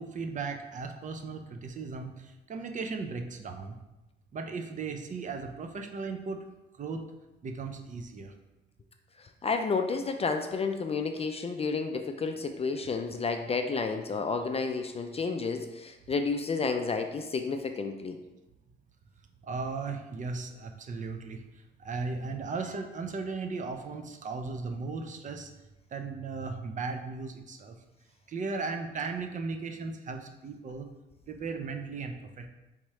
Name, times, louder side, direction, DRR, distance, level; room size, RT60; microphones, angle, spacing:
voice 1, 0.0-3.8 4.3-6.4 6.8-7.0 7.4-8.3 19.4-21.4 21.8-25.5 25.9-27.8 28.3-30.9 31.3-32.5, right 4 dB, 40° right, 5 dB, 0.6 m, -36 dB
voice 2, 9.4-18.2, left 4 dB, 30° left, 6 dB, 0.4 m, -31 dB
3.6 x 3.1 x 4.2 m, 1.0 s
cardioid pair, 90°, 20 cm